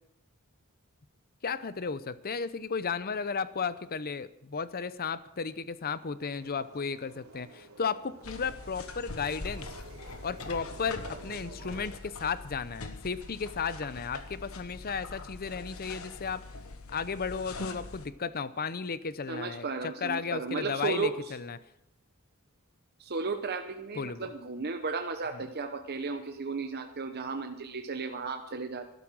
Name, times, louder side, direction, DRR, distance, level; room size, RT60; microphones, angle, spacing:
voice 1, 1.4-9.8 10.2-16.4 16.9-21.6 23.9-24.3 25.3-25.4, left 5 dB, 45° left, 15 dB, 0.7 m, -34 dB
sound 1, 6.2-11.9, right 2 dB, 85° right, 3.3 m, -50 dB
sound 2, 8.2-18.1, left 3 dB, 70° left, 1.3 m, -43 dB
voice 2, 19.3-21.1 23.0-28.8, right 4 dB, 45° right, 5 dB, 0.9 m, -34 dB
12.5 x 12.0 x 6.2 m, 0.85 s
head